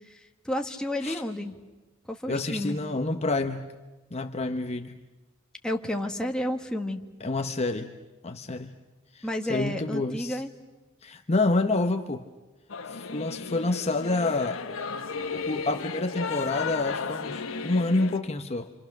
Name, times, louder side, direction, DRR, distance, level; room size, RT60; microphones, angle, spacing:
voice 1, 0.4-1.5 2.1-2.8 5.6-7.0 9.2-10.5, left 1 dB, 5° left, 2 dB, 1.3 m, -31 dB
voice 2, 2.3-3.6 4.1-5.0 7.2-7.9 8.2-8.8 9.1-10.4 11.0-12.2 12.9-14.6 15.3-18.7, left 2 dB, 30° left, 5 dB, 0.8 m, -28 dB
Singing / Musical instrument, 12.7-18.2, left 5 dB, 80° left, 1.2 m, -34 dB
29.0 x 26.5 x 6.6 m, 1.1 s
head